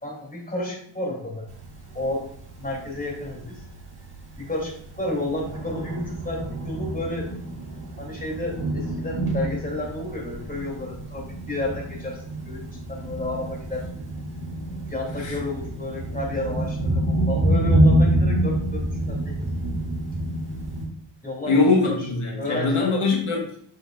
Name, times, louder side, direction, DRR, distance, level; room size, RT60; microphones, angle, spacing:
voice 1, 0.0-1.5 1.9-2.3 2.6-3.6 4.4-7.3 8.0-13.9 14.9-19.4 21.2-22.1 22.4-23.0, left 1 dB, 15° left, -2 dB, 3.1 m, -31 dB
Thunder, 1.5-20.8, right 1 dB, 50° right, 2.9 m, -27 dB
voice 2, 21.5-23.6, left 3 dB, 80° left, -1 dB, 1.6 m, -22 dB
7.9 x 6.4 x 2.5 m, 0.62 s
wide cardioid pair, 75°, 49 cm